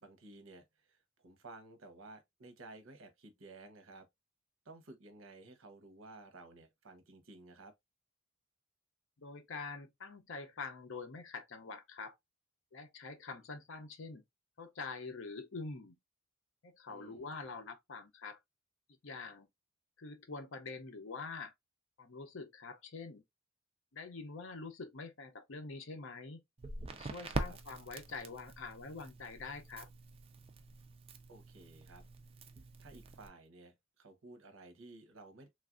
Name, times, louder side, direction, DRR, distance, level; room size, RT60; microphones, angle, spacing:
voice 1, 0.0-4.1 4.6-7.7 16.9-17.4 27.2-27.6 31.3-32.0 32.8-35.5, right 2 dB, 75° right, 0.8 m, -55 dB
voice 2, 9.2-12.1 12.7-14.2 14.6-15.9 16.6-18.4 19.0-19.5 20.0-21.5 22.0-23.2 23.9-26.4 26.9-29.9, left 4 dB, 65° left, 0.7 m, -45 dB
Crackle, 26.6-33.3, right 3 dB, 30° right, 0.4 m, -44 dB
3.2 x 2.4 x 2.4 m
head